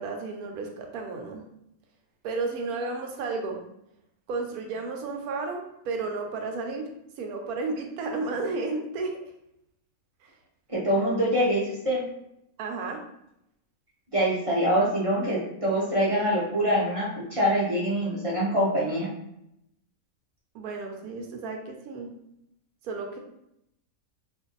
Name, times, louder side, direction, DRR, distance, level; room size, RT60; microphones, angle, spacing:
voice 1, 0.0-1.4 2.2-3.6 4.3-6.8 7.2-9.2 10.2-10.3 12.6-13.0 20.5-22.1 22.8-23.2, right 3 dB, 85° right, 3 dB, 1.1 m, -32 dB
voice 2, 10.7-12.0 14.1-19.1, equal, 35° right, -7 dB, 0.5 m, -24 dB
2.5 x 2.5 x 3.8 m, 0.80 s
omnidirectional pair, 1.5 m